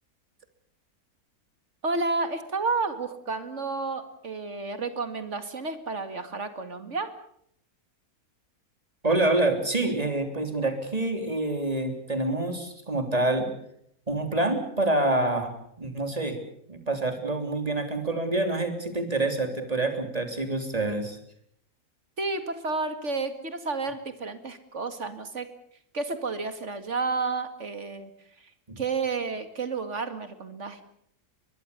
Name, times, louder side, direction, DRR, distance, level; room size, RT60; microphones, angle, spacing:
voice 1, 1.8-7.1 22.2-25.5 25.9-28.1 28.8-30.8, right 3 dB, 50° right, 10 dB, 2.5 m, -31 dB
voice 2, 9.0-13.5 14.1-16.4 16.7-21.2 28.7-28.8, right 2 dB, 25° right, 6 dB, 3.6 m, -27 dB
23.5 x 21.5 x 6.9 m, 0.68 s
omnidirectional pair, 1.6 m